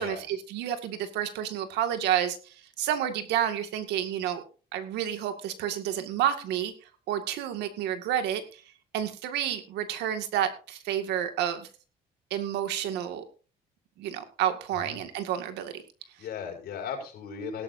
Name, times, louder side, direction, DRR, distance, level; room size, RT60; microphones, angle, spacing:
voice 1, 0.0-4.4 4.7-6.7 7.1-8.6 8.9-11.7 12.3-13.2 14.0-15.8, right 10 dB, 85° right, 8 dB, 2.2 m, -30 dB
voice 2, 16.2-17.6, left 6 dB, 65° left, 2 dB, 5.8 m, -37 dB
17.5 x 12.5 x 2.7 m, 0.36 s
cardioid pair, 110°, 17 cm